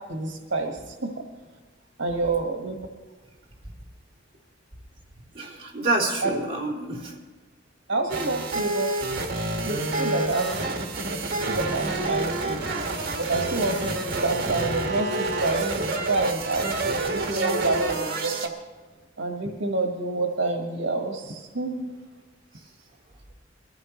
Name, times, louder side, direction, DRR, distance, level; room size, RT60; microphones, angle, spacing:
voice 1, 0.1-1.1 2.0-2.8 6.2-6.3 7.9-9.2 9.6-10.5 11.1-11.2 11.5-12.6 13.2-18.5 19.2-21.9, right 3 dB, 70° right, 2 dB, 1.4 m, -28 dB
voice 2, 5.3-7.1 10.0-10.1, right 2 dB, 30° right, -4 dB, 3.1 m, -28 dB
sound 1, 8.1-18.5, right 2 dB, 55° right, 1.7 m, -28 dB
22.5 x 14.5 x 3.1 m, 1.3 s
head